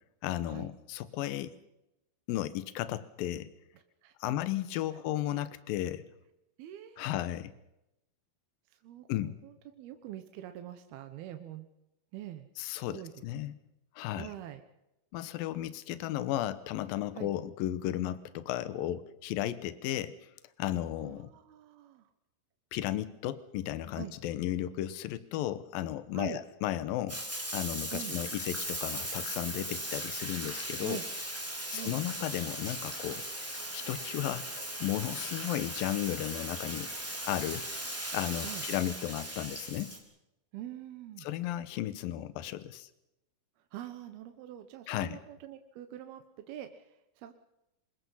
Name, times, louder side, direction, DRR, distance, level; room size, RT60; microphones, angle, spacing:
voice 1, 0.2-1.5 2.3-3.5 4.2-6.0 7.0-7.5 9.1-9.4 12.6-13.5 14.0-14.3 15.1-20.3 20.6-21.3 22.7-27.2 27.5-31.0 31.7-33.2 33.7-34.5 34.8-36.9 37.3-37.7 38.1-39.9 41.2-42.9 44.9-45.2, left 13 dB, 75° left, 14 dB, 2.7 m, -34 dB
voice 2, 3.7-4.4 4.9-5.0 6.6-7.1 8.7-11.7 12.1-12.5 12.9-13.1 14.2-14.6 17.2-17.3 21.0-22.1 23.9-24.1 26.1-26.4 27.9-28.2 30.8-31.0 31.7-32.0 38.4-38.7 40.5-41.3 43.7-47.3, right 12 dB, 80° right, 7 dB, 3.0 m, -44 dB
Bathtub (filling or washing), 27.1-40.0, right 1 dB, 5° right, 2.8 m, -38 dB
26.5 x 21.0 x 5.6 m, 0.89 s
omnidirectional pair, 4.4 m